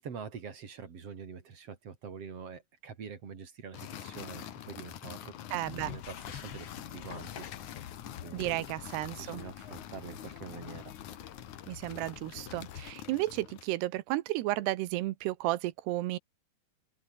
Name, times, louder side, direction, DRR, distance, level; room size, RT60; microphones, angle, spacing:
voice 1, 0.0-7.5 8.2-8.8 9.2-10.9, right 6 dB, 40° right, 3.7 m, -45 dB
sound 1, 3.7-13.8, left 11 dB, 60° left, 2.4 m, -46 dB
voice 2, 5.5-5.9 8.3-9.4 11.7-16.2, right 17 dB, 80° right, 3.0 m, -33 dB
sound 2, 5.6-12.9, left 10 dB, 90° left, 1.3 m, -48 dB
omnidirectional pair, 4.8 m